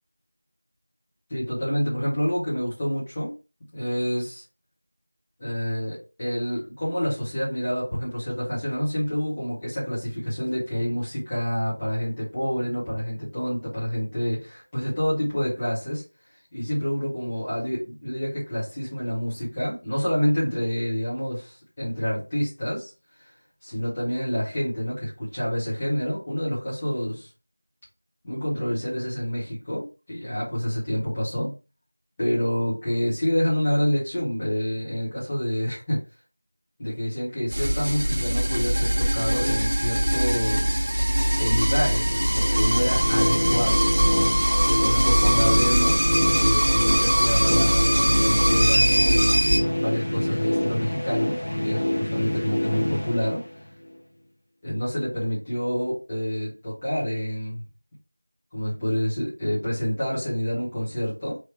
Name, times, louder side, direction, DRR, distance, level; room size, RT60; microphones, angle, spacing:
voice 1, 1.3-3.3 3.7-4.4 5.4-16.0 16.5-22.9 23.6-27.3 28.2-31.5 32.2-36.0 36.8-40.7 41.4-43.9 44.6-46.0 46.3-53.5 54.6-57.6 58.5-61.4, equal, 10° left, -10 dB, 1.2 m, -27 dB
sound 1, 37.5-49.6, equal, 30° right, 1.0 m, -21 dB
sound 2, 42.0-53.9, left 1 dB, 45° left, 0.8 m, -27 dB
3.7 x 3.1 x 4.7 m, 0.29 s
figure-of-eight pair, 175°, 0 cm